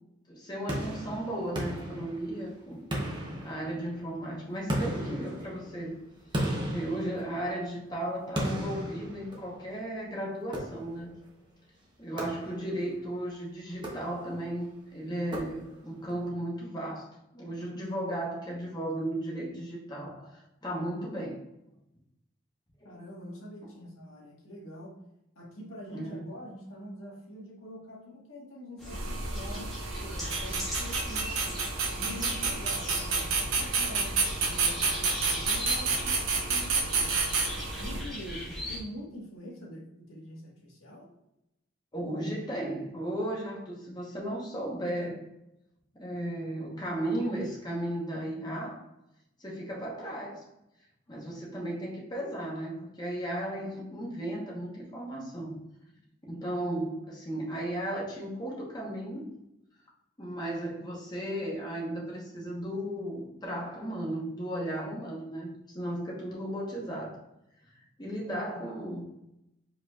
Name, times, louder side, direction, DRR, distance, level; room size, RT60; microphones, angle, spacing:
voice 1, 0.3-2.8 3.4-6.0 6.6-11.1 12.0-21.4 22.8-22.9 25.9-26.3 41.9-45.3 46.0-48.9 49.4-50.5 51.1-55.6 56.2-59.2 60.2-67.2 68.0-69.0, right 1 dB, 20° left, -3 dB, 1.1 m, -35 dB
sound 1, 0.7-2.5 2.9-4.1 4.7-7.7 8.3-9.8 10.5-11.2 12.2-12.9 13.7-14.5 15.3-16.0, equal, 20° right, 0.8 m, -36 dB
voice 2, 22.8-25.0 25.3-31.5 31.9-37.1 37.8-41.1 68.5-68.6, equal, 80° left, -3 dB, 1.6 m, -45 dB
sound 2, 28.8-38.8, equal, ahead, 1.4 m, -39 dB
sound 3, 28.9-38.0, right 4 dB, 80° right, 0.8 m, -30 dB
4.9 x 4.2 x 2.4 m, 0.86 s
head